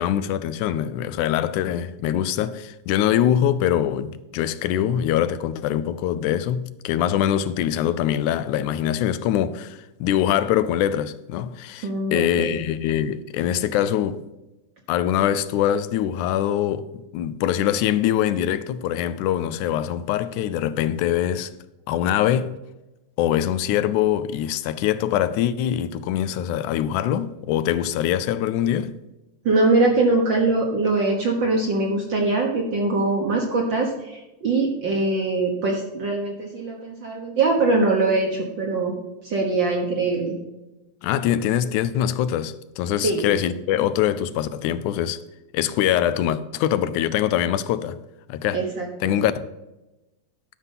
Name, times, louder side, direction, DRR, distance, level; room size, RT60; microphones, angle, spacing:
voice 1, 0.0-14.2 14.9-16.9 17.1-21.5 21.9-22.5 23.2-28.9 41.0-45.2 45.5-48.0 48.3-48.6 49.0-49.3, left 11 dB, 85° left, 2.0 m, -23 dB
voice 2, 11.8-12.6 29.4-38.9 39.2-40.3 43.0-43.2 48.5-49.1, right 3 dB, 55° right, 1.4 m, -22 dB
12.0 x 5.7 x 5.5 m
omnidirectional pair, 3.4 m